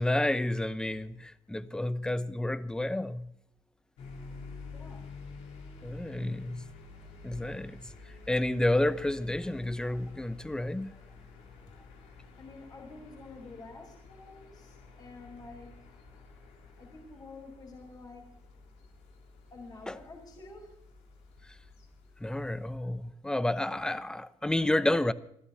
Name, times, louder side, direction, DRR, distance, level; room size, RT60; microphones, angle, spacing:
voice 1, 0.0-3.3 5.8-6.7 7.2-7.8 8.3-10.9 19.9-20.0 22.2-25.1, left 1 dB, 5° left, 0.8 m, -30 dB
sound 1, 4.0-22.7, left 4 dB, 80° left, 4.2 m, -50 dB
voice 2, 4.7-5.1 12.3-15.8 16.8-18.4 19.5-20.8, left 3 dB, 35° left, 4.6 m, -49 dB
30.0 x 12.5 x 2.8 m
cardioid pair, 105°, 11 cm